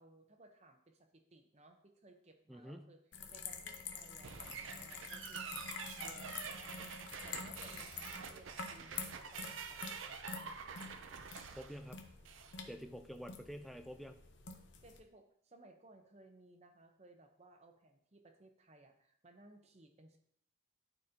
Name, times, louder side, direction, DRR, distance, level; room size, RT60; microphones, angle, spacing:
voice 1, 0.0-3.0 3.3-10.6 14.8-20.2, right 2 dB, 30° right, 5 dB, 0.8 m, -62 dB
voice 2, 2.5-2.9 11.5-12.0 12.6-14.2, equal, ahead, 5 dB, 0.4 m, -48 dB
sound 1, 3.1-15.0, left 5 dB, 65° left, 0.8 m, -48 dB
sound 2, 4.2-12.6, right 6 dB, 75° right, 0.6 m, -47 dB
12.0 x 4.2 x 2.8 m, 0.70 s
head